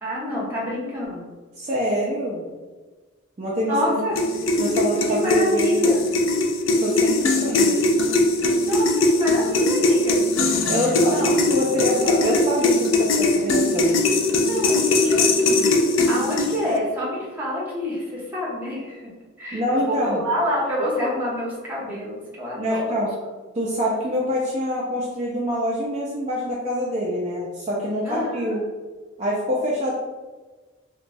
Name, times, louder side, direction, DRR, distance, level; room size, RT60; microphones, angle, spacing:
voice 1, 0.0-1.3 3.6-4.2 5.1-6.0 8.6-10.3 10.8-11.4 14.4-15.7 16.1-19.1 19.4-23.0 28.0-28.6, left 1 dB, 10° right, -6 dB, 0.8 m, -27 dB
voice 2, 1.6-2.4 3.4-4.0 4.6-5.9 6.8-7.9 10.7-14.0 19.5-20.2 22.6-23.1 23.5-28.6 29.2-29.9, equal, 35° right, -6 dB, 0.4 m, -25 dB
sound 1, 4.2-16.8, left 2 dB, 70° left, 0.3 m, -20 dB
2.9 x 2.2 x 2.6 m, 1.3 s
head